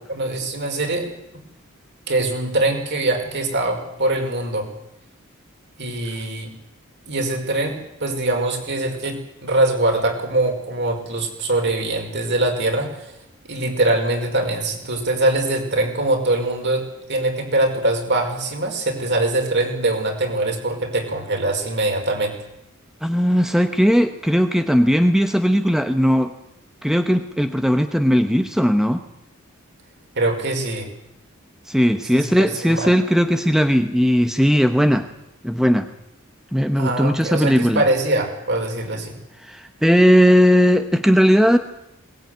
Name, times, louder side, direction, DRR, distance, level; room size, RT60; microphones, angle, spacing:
voice 1, 0.1-1.1 2.1-4.7 5.8-6.5 7.1-13.1 13.5-22.4 30.2-30.9 32.1-32.9 36.8-39.2, right 2 dB, 55° right, 4 dB, 5.4 m, -23 dB
voice 2, 23.0-26.3 26.8-29.0 31.7-35.0 35.4-35.9 36.5-37.8 39.5-41.6, equal, ahead, 8 dB, 1.0 m, -17 dB
22.0 x 19.5 x 9.4 m, 0.86 s
head